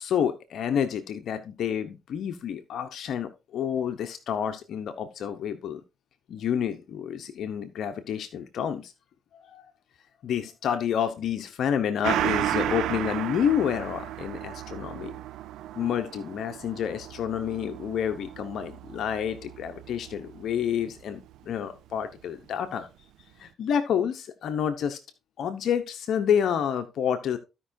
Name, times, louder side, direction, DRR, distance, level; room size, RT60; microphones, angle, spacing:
voice 1, 0.0-5.8 6.3-8.9 9.3-9.6 10.2-15.1 15.7-22.9 23.4-25.0 25.4-27.4, left 8 dB, 70° left, 8 dB, 0.9 m, -29 dB
Gong, 12.0-21.0 21.3-21.4, right 12 dB, 85° right, 0.4 m, -34 dB
15.0 x 5.5 x 2.7 m, 0.27 s
cardioid pair, 90°, 0 cm